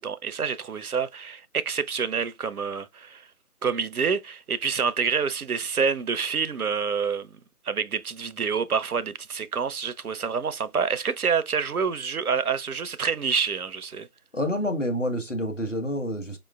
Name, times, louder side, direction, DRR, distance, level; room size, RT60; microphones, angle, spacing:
voice 1, 0.0-3.3 3.6-7.3 7.6-14.1, right 6 dB, 75° right, 0.6 m, -27 dB
voice 2, 14.3-16.4, equal, 55° left, 1.2 m, -28 dB
5.1 x 3.0 x 2.3 m
figure-of-eight pair, 180°, 45 cm